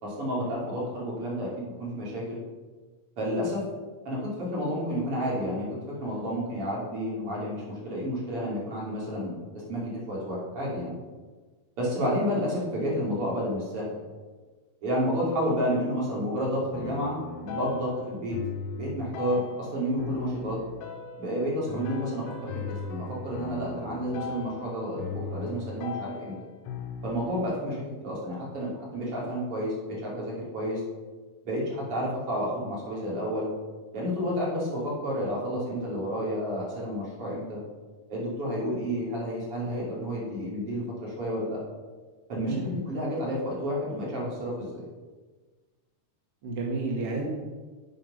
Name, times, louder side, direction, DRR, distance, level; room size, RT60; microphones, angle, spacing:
voice 1, 0.0-2.4 3.2-3.6 4.0-11.0 11.8-14.1 14.8-17.2 17.4-18.4 18.8-20.6 21.2-26.4 27.0-30.8 31.4-33.5 33.9-37.6 38.1-41.6 42.3-44.8, equal, 35° right, -6 dB, 3.2 m, -30 dB
sound 1, 16.7-27.4, left 4 dB, 75° left, 2.6 m, -38 dB
voice 2, 46.4-47.3, right 3 dB, 80° right, -2 dB, 1.3 m, -31 dB
8.7 x 7.0 x 5.6 m, 1.4 s
omnidirectional pair, 5.4 m